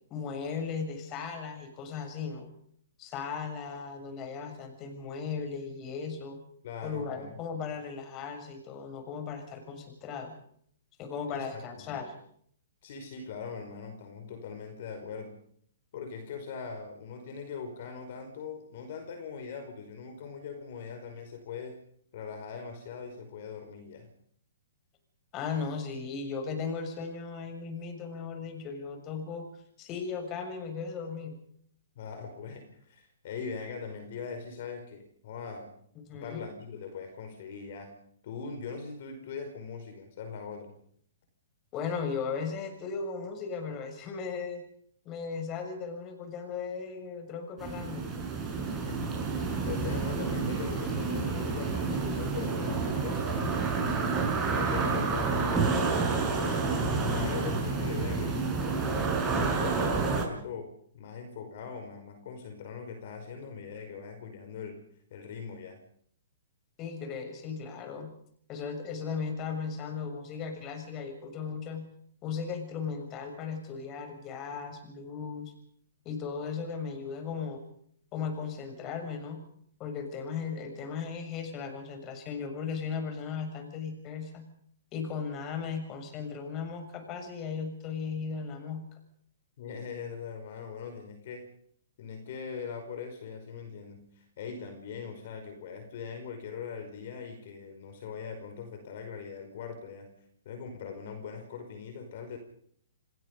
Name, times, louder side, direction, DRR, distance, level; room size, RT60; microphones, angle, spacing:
voice 1, 0.1-2.5 3.0-6.4 6.8-10.3 11.0-12.1 25.3-29.5 29.8-31.4 36.0-36.4 41.7-44.6 45.0-48.1 66.8-68.1 68.5-71.9 72.2-75.5 76.0-77.6 78.1-79.4 79.8-84.4 84.9-88.8, left 5 dB, 30° left, 6 dB, 6.7 m, -36 dB
voice 2, 6.6-7.4 11.3-12.0 12.8-15.4 15.9-21.8 22.1-24.1 31.9-35.7 36.1-37.9 38.2-40.7 48.4-48.6 48.9-54.1 54.5-56.6 57.0-64.8 65.1-65.8 89.6-91.5 92.0-100.1 100.4-102.4, left 6 dB, 55° left, 7 dB, 5.1 m, -41 dB
sound 1, 47.6-60.3, right 4 dB, 15° right, 6.7 m, -29 dB
29.0 x 19.5 x 5.4 m, 0.63 s
hypercardioid pair, 125°, 0 cm